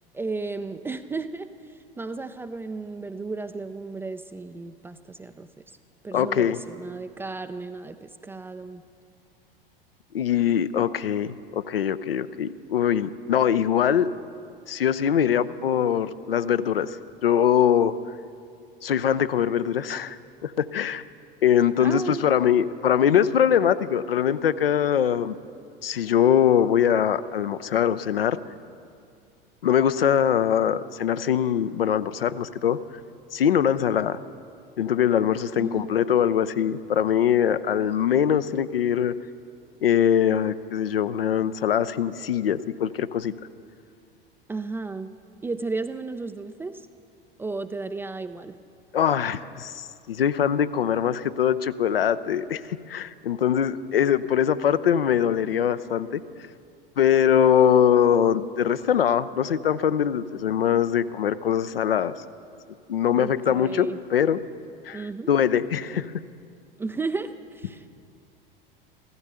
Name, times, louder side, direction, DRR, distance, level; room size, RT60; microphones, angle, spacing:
voice 1, 0.1-1.5 2.0-5.5 6.0-8.8 21.8-22.3 35.6-36.1 44.5-45.1 45.4-46.9 47.4-48.6 63.2-64.0 64.9-65.3 66.8-67.9, right 3 dB, 10° right, 10 dB, 0.3 m, -34 dB
voice 2, 6.1-6.6 10.1-14.1 14.7-18.0 18.8-21.0 21.4-25.4 25.8-28.4 29.6-32.8 33.3-34.2 34.8-39.1 39.8-43.3 48.9-56.2 57.0-62.1 62.9-64.4 64.9-66.1, left 9 dB, 75° left, 14 dB, 0.6 m, -22 dB
15.0 x 13.5 x 6.8 m, 2.4 s
figure-of-eight pair, 80°, 29 cm